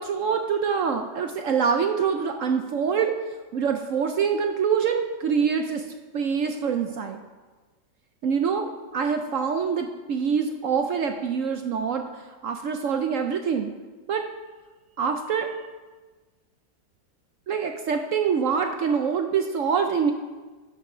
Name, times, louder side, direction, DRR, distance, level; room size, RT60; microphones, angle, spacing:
voice 1, 0.0-3.1 3.5-5.8 6.1-7.2 8.2-12.1 12.4-13.7 14.1-14.2 15.0-15.5 17.5-20.1, right 6 dB, 65° right, 5 dB, 0.8 m, -25 dB
12.0 x 5.6 x 4.9 m, 1.3 s
omnidirectional pair, 1.8 m